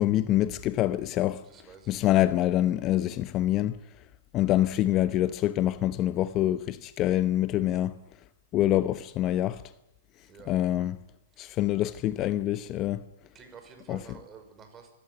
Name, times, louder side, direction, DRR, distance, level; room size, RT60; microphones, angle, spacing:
voice 1, 0.0-1.4 1.9-3.7 4.3-8.0 8.5-9.6 10.5-11.0 11.4-13.0 13.9-14.0, left 13 dB, 30° left, 0.9 m, -25 dB
voice 2, 1.4-2.1 10.3-10.6 11.4-11.6 12.9-13.0 13.3-14.9, right 6 dB, 20° right, 5.5 m, -50 dB
24.0 x 16.0 x 10.0 m
hypercardioid pair, 115°, 0 cm